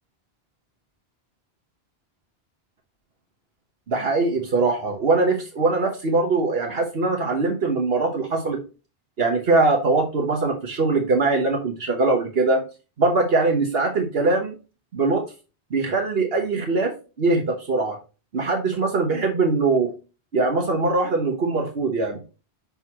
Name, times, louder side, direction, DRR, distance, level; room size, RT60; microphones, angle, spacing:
voice 1, 3.9-8.6 9.2-12.6 13.0-14.5 14.9-15.2 15.7-18.0 18.3-19.9 20.3-22.2, right 3 dB, 70° right, 3 dB, 1.3 m, -22 dB
6.0 x 5.5 x 2.9 m, 0.31 s
omnidirectional pair, 1.1 m